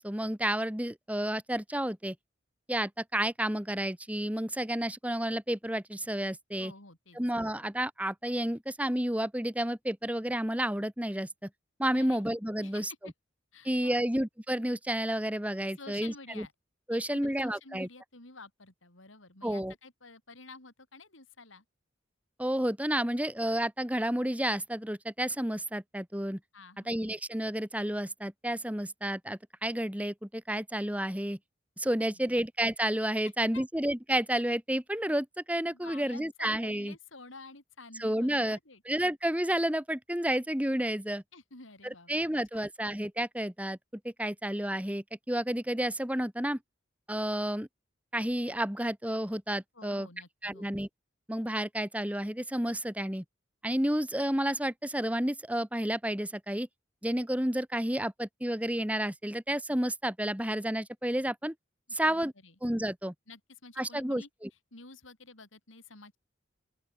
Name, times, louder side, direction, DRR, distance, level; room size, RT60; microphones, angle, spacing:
voice 1, 0.0-2.2 2.7-6.7 7.2-11.5 11.8-13.1 13.6-16.5 16.9-17.9 19.4-19.7 22.4-26.4 26.9-31.4 31.8-36.9 38.0-38.6 38.9-41.2 41.8-43.8 44.0-46.6 47.1-47.7 48.1-50.1 50.4-50.9 51.3-53.2 53.6-56.7 57.0-61.5 61.9-62.3 62.6-63.1 63.8-64.5, right 1 dB, 5° right, 2.0 m, -31 dB
voice 2, 6.6-7.5 11.9-12.2 12.6-13.1 13.5-14.1 15.8-16.5 16.9-21.6 26.5-27.1 33.5-33.7 35.5-38.8 41.3-42.1 42.5-42.7 49.7-50.8 61.9-62.5 63.3-64.3 64.7-66.2, left 3 dB, 90° left, 7.0 m, -51 dB
open air
head